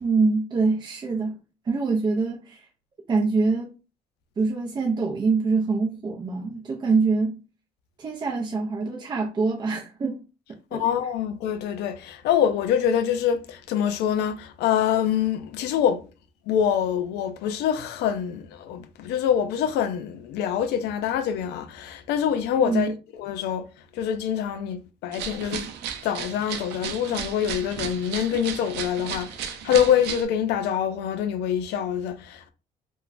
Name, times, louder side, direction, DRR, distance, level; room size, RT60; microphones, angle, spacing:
voice 1, 0.0-1.4 1.6-2.7 3.1-3.7 4.4-7.4 8.0-10.2 10.7-10.8 22.6-22.9, right 4 dB, 25° right, 0.5 m, -24 dB
voice 2, 10.7-16.0 16.5-22.9 23.2-23.6 23.9-25.7 26.0-32.5, left 9 dB, 80° left, 0.4 m, -25 dB
sound 1, 25.1-30.2, right 8 dB, 80° right, 0.5 m, -34 dB
2.9 x 2.2 x 2.5 m
cardioid pair, 110°, 17 cm